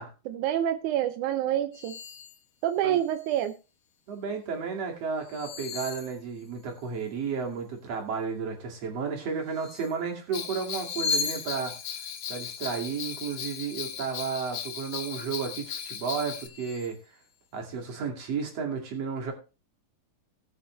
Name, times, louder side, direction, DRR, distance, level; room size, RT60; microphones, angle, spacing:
voice 1, 0.3-2.0 2.6-3.5, right 11 dB, 80° right, 8 dB, 1.8 m, -27 dB
sound 1, 1.7-2.4 2.9-3.5 5.2-6.8 9.5-10.0 10.7-14.1 14.5-15.1 15.6-15.7 16.2-17.0, left 5 dB, 70° left, 2.5 m, -38 dB
voice 2, 4.1-11.7 12.3-17.0 17.5-19.3, right 5 dB, 45° right, 2 dB, 3.1 m, -33 dB
Bell, 10.3-16.5, left 8 dB, 90° left, 1.3 m, -37 dB
19.0 x 6.5 x 3.2 m, 0.31 s
omnidirectional pair, 4.3 m